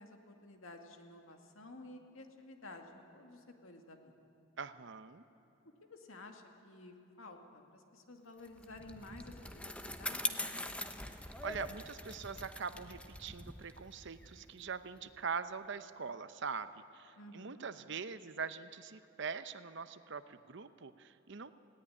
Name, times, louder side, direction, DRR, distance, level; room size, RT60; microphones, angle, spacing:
voice 1, 0.0-4.1 5.8-10.9 17.2-17.7, left 2 dB, 90° left, 4 dB, 2.1 m, -53 dB
voice 2, 4.6-5.2 11.4-21.6, right 5 dB, 60° right, 12 dB, 0.8 m, -43 dB
Bicycle, 8.4-15.2, left 2 dB, 5° left, 0.8 m, -43 dB
19.0 x 17.0 x 9.9 m, 2.9 s
head